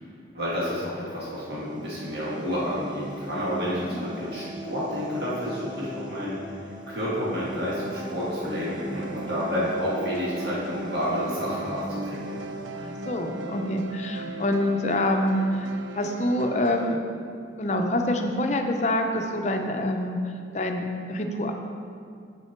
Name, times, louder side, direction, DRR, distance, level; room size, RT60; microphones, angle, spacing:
voice 1, 0.3-12.4, equal, 60° right, -8 dB, 1.9 m, -30 dB
sound 1, 1.1-14.7, right 1 dB, 25° right, 0.5 m, -39 dB
sound 2, 8.7-17.0, right 3 dB, 85° right, 0.4 m, -39 dB
voice 2, 12.8-15.7 15.9-17.0 17.6-20.2 20.5-21.5, left 1 dB, 40° left, 4 dB, 0.6 m, -26 dB
8.2 x 6.1 x 4.4 m, 2.3 s
head